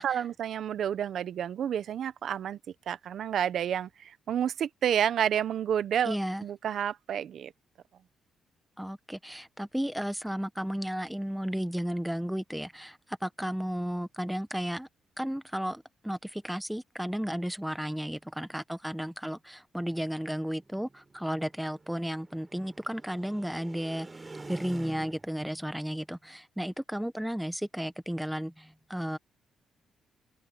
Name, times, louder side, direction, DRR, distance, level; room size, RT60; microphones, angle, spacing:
voice 1, 0.0-2.6 2.9-6.1 6.4-7.5, right 9 dB, 65° right, 0.8 m, -30 dB
voice 2, 6.0-6.4 8.8-14.9 15.2-24.1 24.5-29.2, equal, 5° right, 1.0 m, -33 dB
sound 1, 20.5-25.5, right 3 dB, 20° right, 4.6 m, -48 dB
open air
cardioid pair, 110°, 0 cm